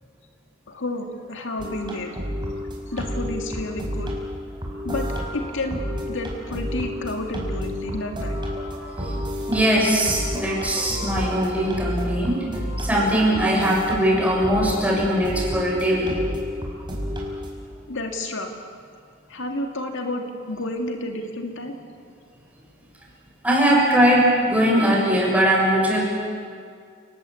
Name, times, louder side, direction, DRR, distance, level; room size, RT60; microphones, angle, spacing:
voice 1, 0.7-2.1 2.9-4.1 4.8-8.4 17.9-18.5 19.3-21.7, left 1 dB, 65° left, 4 dB, 2.2 m, -30 dB
sound 1, 1.6-17.6, equal, 25° right, 5.2 m, -31 dB
voice 2, 9.5-12.4 12.8-16.4 23.4-26.0, equal, 5° right, -3 dB, 6.8 m, -20 dB
29.5 x 19.5 x 8.4 m, 2.3 s
head